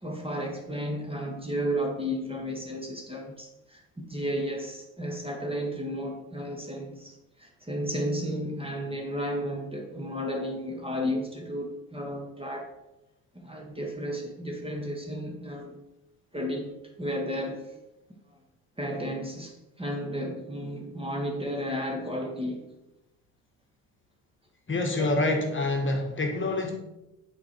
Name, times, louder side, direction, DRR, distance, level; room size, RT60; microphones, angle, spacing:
voice 1, 0.0-12.7 13.3-15.8 16.3-16.7 17.0-17.7 18.3-18.4 18.8-22.6 25.0-25.1, equal, 10° right, 1 dB, 1.5 m, -33 dB
voice 2, 24.7-26.7, left 2 dB, 25° left, 2 dB, 1.6 m, -26 dB
7.8 x 4.6 x 4.5 m, 0.94 s
hypercardioid pair, 60°, 47 cm